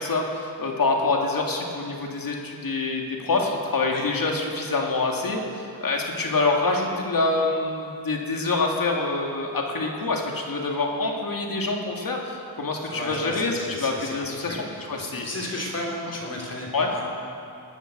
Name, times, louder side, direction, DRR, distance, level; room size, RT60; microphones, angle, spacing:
voice 1, 0.0-15.3 16.1-16.2 16.7-16.9, left 3 dB, 65° left, 0 dB, 2.3 m, -26 dB
voice 2, 12.9-14.1 14.5-17.0, left 1 dB, 40° left, -2 dB, 3.5 m, -33 dB
20.0 x 10.0 x 6.7 m, 2.5 s
wide cardioid pair, 85°, 37 cm